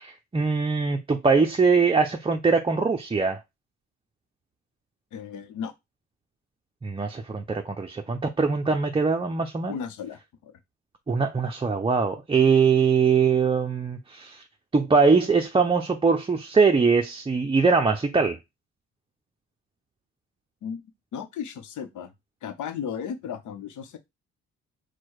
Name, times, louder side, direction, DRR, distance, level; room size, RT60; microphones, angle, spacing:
voice 1, 0.0-3.4 6.8-9.8 11.1-14.4 14.7-18.4, right 5 dB, 20° right, 0.5 m, -22 dB
voice 2, 5.1-5.7 9.7-10.6 20.6-20.9 21.1-22.1 22.4-24.0, left 7 dB, 75° left, 0.8 m, -35 dB
4.5 x 2.2 x 4.6 m
cardioid pair, 90°, 30 cm